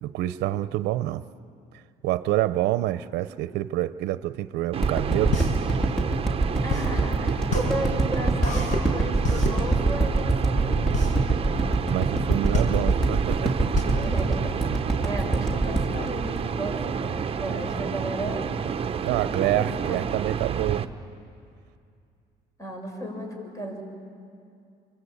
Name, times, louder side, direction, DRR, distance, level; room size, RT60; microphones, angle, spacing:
voice 1, 0.0-1.2 2.0-5.4 11.9-13.7 19.0-20.9, right 15 dB, 85° right, 14 dB, 0.7 m, -27 dB
sound 1, 4.7-20.8, right 7 dB, 35° right, 1.0 m, -30 dB
sound 2, 4.8-17.1 17.6-17.7, right 3 dB, 5° left, 2.2 m, -24 dB
sound 3, 5.3-15.2, left 1 dB, 45° left, 6.9 m, -29 dB
voice 2, 6.6-11.0 13.8-18.5 19.1-20.1 22.6-23.8, equal, 20° left, 3 dB, 6.1 m, -35 dB
27.0 x 25.0 x 8.6 m, 2.4 s
cardioid pair, 110°, 17 cm